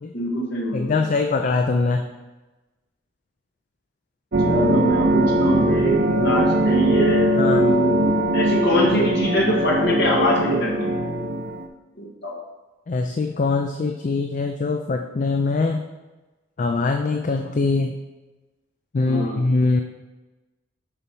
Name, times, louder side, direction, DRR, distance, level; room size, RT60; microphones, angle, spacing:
voice 1, 0.1-1.0 4.4-10.9 12.0-12.3 19.0-19.4, right 1 dB, 55° left, -3 dB, 1.7 m, -23 dB
voice 2, 0.7-2.1 7.4-7.7 12.9-15.8 16.6-17.9 18.9-19.8, left 3 dB, 40° left, 5 dB, 0.4 m, -22 dB
sound 1, 4.3-11.7, right 1 dB, 55° right, 0.7 m, -20 dB
6.8 x 5.4 x 4.5 m, 1.2 s
head